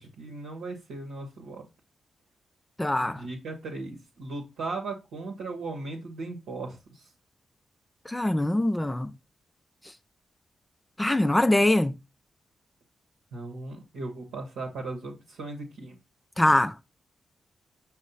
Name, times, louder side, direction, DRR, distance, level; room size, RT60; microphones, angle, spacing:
voice 1, 0.0-1.7 3.0-7.1 13.3-16.0, right 3 dB, 85° right, 0.8 m, -37 dB
voice 2, 2.8-3.2 8.1-9.1 11.0-11.9 16.4-16.7, left 1 dB, 15° left, 0.3 m, -23 dB
5.3 x 2.1 x 3.8 m
supercardioid pair, 40°, 0 cm